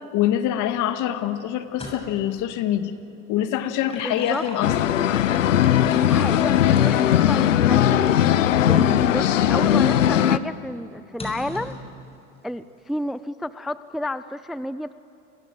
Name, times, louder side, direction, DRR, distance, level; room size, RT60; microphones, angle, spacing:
voice 1, 0.1-2.9 3.3-4.7, left 11 dB, 55° left, 9 dB, 2.1 m, -24 dB
sound 1, 1.6-2.3 3.6-8.5 9.1-9.2 11.2-11.8, left 2 dB, 15° left, 7.3 m, -40 dB
voice 2, 4.0-4.5 5.9-8.2 8.5-11.7 12.4-15.0, left 1 dB, ahead, 14 dB, 0.5 m, -31 dB
sound 2, 4.6-10.4, left 11 dB, 90° left, 0.9 m, -19 dB
29.5 x 23.5 x 7.6 m, 2.9 s
hypercardioid pair, 85°, 37 cm